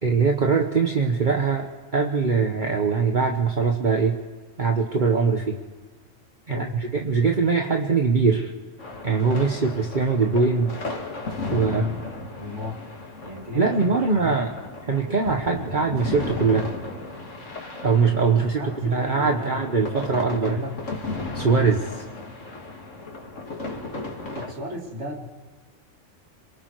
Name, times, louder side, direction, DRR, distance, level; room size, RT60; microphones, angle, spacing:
voice 1, 0.0-4.2 4.6-5.6 6.5-6.6 6.9-8.5 9.0-10.8 11.5-11.8 13.5-14.5 14.9-16.7 17.8-20.6 21.3-22.0, right 5 dB, 40° right, 2 dB, 1.4 m, -22 dB
sound 1, 8.8-24.5, left 2 dB, 75° left, 2.6 m, -35 dB
voice 2, 11.5-12.0 12.3-12.9 13.2-14.4 18.4-20.8 24.3-25.3, left 2 dB, 65° right, 1 dB, 3.1 m, -34 dB
27.5 x 23.5 x 4.8 m, 1.3 s
omnidirectional pair, 1.3 m